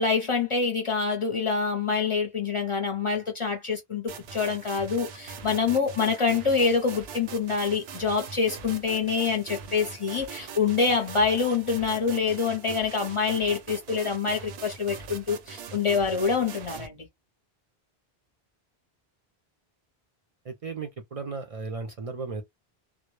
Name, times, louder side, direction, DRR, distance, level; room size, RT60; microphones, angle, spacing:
voice 1, 0.0-17.0, left 5 dB, 40° left, 0.5 m, -26 dB
sound 1, 4.1-16.9, right 6 dB, 85° right, 0.8 m, -42 dB
voice 2, 20.4-22.4, right 4 dB, 55° right, 0.4 m, -35 dB
2.2 x 2.0 x 3.0 m
omnidirectional pair, 1.0 m